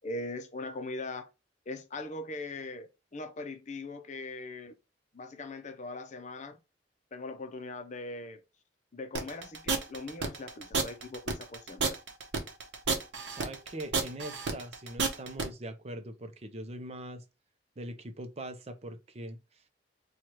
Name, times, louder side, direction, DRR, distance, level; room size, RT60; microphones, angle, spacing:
voice 1, 0.0-1.3 1.7-4.7 5.1-6.6 7.1-8.4 8.9-11.9, left 2 dB, 40° left, 0.6 m, -40 dB
sound 1, 9.1-15.5, right 4 dB, 75° right, 0.8 m, -31 dB
voice 2, 13.3-17.2 17.8-19.7, right 1 dB, 35° right, 0.6 m, -42 dB
4.6 x 2.3 x 2.8 m
head